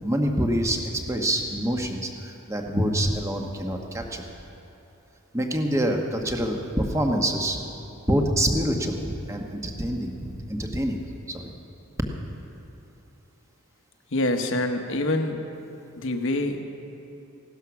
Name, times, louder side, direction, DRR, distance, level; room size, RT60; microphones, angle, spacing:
voice 1, 0.0-4.2 5.3-7.6 8.1-11.0 11.3-11.5, equal, 15° right, 2 dB, 1.1 m, -26 dB
voice 2, 14.1-15.4 16.0-16.6, left 2 dB, 60° left, 5 dB, 1.1 m, -25 dB
16.5 x 12.5 x 6.0 m, 2.9 s
head